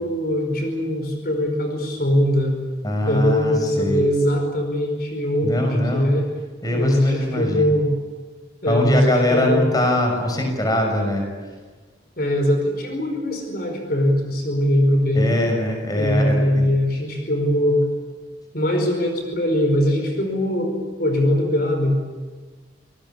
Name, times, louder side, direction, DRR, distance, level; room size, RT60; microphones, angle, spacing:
voice 1, 0.0-2.6 3.0-6.2 6.7-7.9 8.6-9.6 12.2-15.4 15.9-17.8 18.5-22.0, equal, 55° left, 4 dB, 4.9 m, -21 dB
voice 2, 2.8-4.0 5.4-6.1 6.6-7.7 8.6-11.3 15.1-16.7, left 1 dB, 20° left, 3 dB, 6.3 m, -22 dB
27.0 x 20.5 x 8.8 m, 1.4 s
head